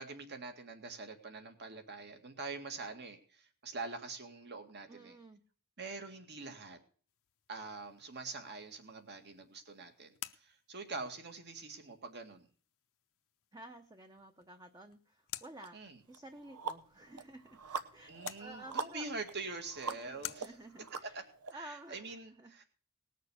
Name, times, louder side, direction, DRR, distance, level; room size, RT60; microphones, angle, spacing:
voice 1, 0.0-5.2 5.8-6.8 7.5-12.5 15.7-16.0 18.1-20.5 21.0-22.6, right 3 dB, 50° right, 6 dB, 2.1 m, -45 dB
voice 2, 4.9-5.4 13.5-15.8 16.1-17.6 17.9-19.1 19.9-21.2 21.5-22.5, right 1 dB, 15° right, 6 dB, 1.0 m, -52 dB
sound 1, 7.1-20.8, left 14 dB, 65° left, 0.7 m, -53 dB
sound 2, 15.6-15.7 16.1-21.5, right 5 dB, 90° right, 1.1 m, -43 dB
19.0 x 6.7 x 6.4 m, 0.43 s
head